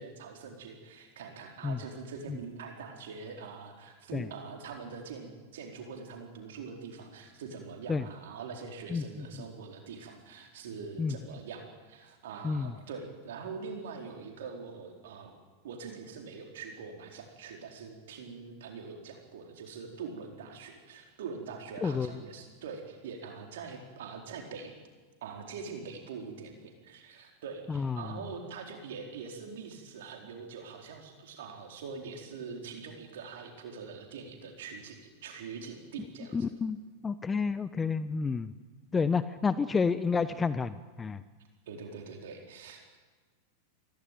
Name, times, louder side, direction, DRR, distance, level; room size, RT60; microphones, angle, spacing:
voice 1, 0.0-15.4 15.6-24.7 25.2-36.5 41.7-42.9, right 5 dB, 65° right, 2 dB, 4.2 m, -43 dB
voice 2, 8.9-9.3 11.0-11.2 12.4-12.7 21.8-22.1 27.7-28.2 36.3-38.5 38.9-41.2, left 5 dB, 15° left, 14 dB, 0.8 m, -30 dB
24.0 x 17.0 x 9.3 m, 1.4 s
figure-of-eight pair, 90°, 0 cm